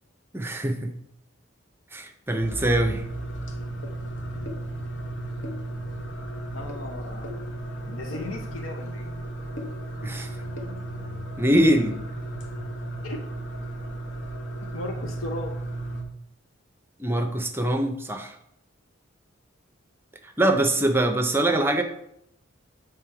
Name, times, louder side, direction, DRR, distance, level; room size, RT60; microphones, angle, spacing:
voice 1, 0.3-0.9 1.9-3.0 10.0-10.3 11.4-12.0 17.0-18.3 20.4-21.8, right 1 dB, 10° right, 5 dB, 0.5 m, -23 dB
sound 1, 2.4-16.0, right 1 dB, 65° left, 1.0 m, -34 dB
voice 2, 6.5-7.3 7.9-9.1 10.0-10.1 13.0-13.2 14.7-15.5, left 2 dB, 90° left, 3 dB, 0.7 m, -36 dB
7.3 x 3.4 x 4.7 m, 0.75 s
head